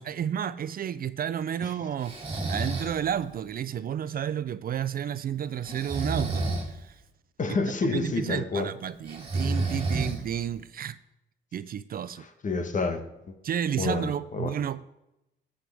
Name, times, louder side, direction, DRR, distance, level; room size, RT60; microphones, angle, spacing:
voice 1, 0.0-2.1 2.5-6.9 7.8-11.0 11.5-12.2 13.4-14.8, right 9 dB, 50° right, 0.4 m, -31 dB
Breathing, 2.0-3.0 5.6-6.7 9.1-10.5, right 2 dB, 30° right, 2.8 m, -30 dB
voice 2, 7.4-8.7 12.4-13.0 13.3-13.4 13.8-14.5, left 3 dB, 40° left, 1.2 m, -29 dB
12.0 x 7.9 x 3.5 m
cardioid pair, 90°, 20 cm